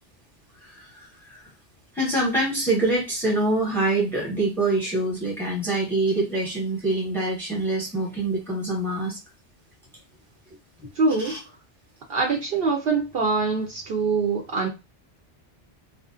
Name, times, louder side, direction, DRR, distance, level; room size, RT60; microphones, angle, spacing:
voice 1, 0.6-1.5 1.9-9.2 11.2-11.4, right 2 dB, ahead, 0.9 m, -25 dB
voice 2, 11.0-11.4 12.1-14.7, right 4 dB, 60° right, 0.8 m, -24 dB
2.5 x 2.1 x 2.4 m
omnidirectional pair, 1.2 m